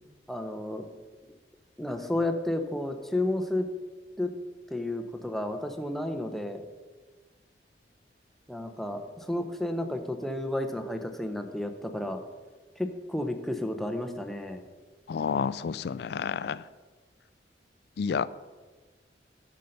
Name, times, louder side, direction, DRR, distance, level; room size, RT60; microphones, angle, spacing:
voice 1, 0.3-0.9 1.8-3.7 4.2-4.3 4.7-6.6 8.5-12.2 12.8-14.6, left 1 dB, ahead, 6 dB, 0.6 m, -32 dB
voice 2, 15.1-16.6 18.0-18.3, left 6 dB, 60° left, 18 dB, 0.3 m, -29 dB
8.1 x 5.6 x 6.5 m, 1.4 s
head